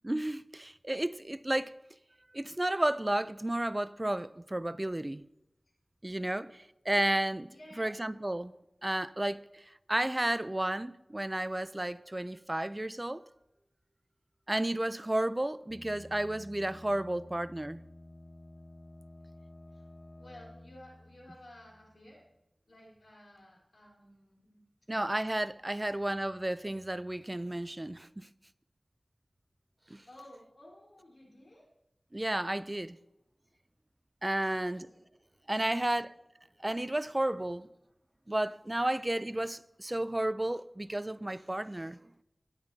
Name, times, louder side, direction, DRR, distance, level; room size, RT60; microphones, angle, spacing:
voice 1, 0.0-1.7 2.3-5.3 6.0-7.5 7.8-8.5 8.8-13.2 14.5-17.8 24.9-28.3 29.9-30.0 32.1-33.0 34.2-34.9 35.5-36.1 36.6-37.7 38.3-42.0, right 1 dB, 25° right, 0.4 m, -32 dB
voice 2, 7.5-8.0 16.0-16.2 19.7-19.9 20.2-22.2 22.7-24.6 25.6-26.2 30.1-31.7 34.3-34.8, left 1 dB, 70° left, 3.8 m, -55 dB
sound 1, 15.7-22.3, left 1 dB, 55° left, 0.7 m, -52 dB
18.5 x 10.5 x 2.7 m
wide cardioid pair, 70°, 0 cm